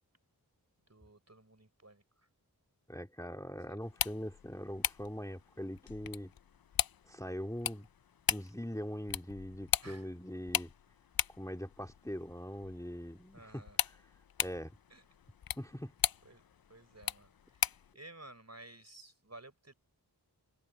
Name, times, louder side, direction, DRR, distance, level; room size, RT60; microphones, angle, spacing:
voice 1, 0.9-2.0 3.6-3.8 9.8-10.1 13.3-13.8 14.9-15.0 16.2-16.4 16.7-19.7, right 2 dB, 40° right, 4.7 m, -54 dB
voice 2, 2.9-6.3 7.1-7.9 8.3-10.7 11.4-13.6 14.4-14.7 15.6-15.9, equal, 10° left, 2.4 m, -42 dB
sound 1, 3.8-17.9, left 9 dB, 65° left, 0.5 m, -39 dB
wide cardioid pair, 40°, 39 cm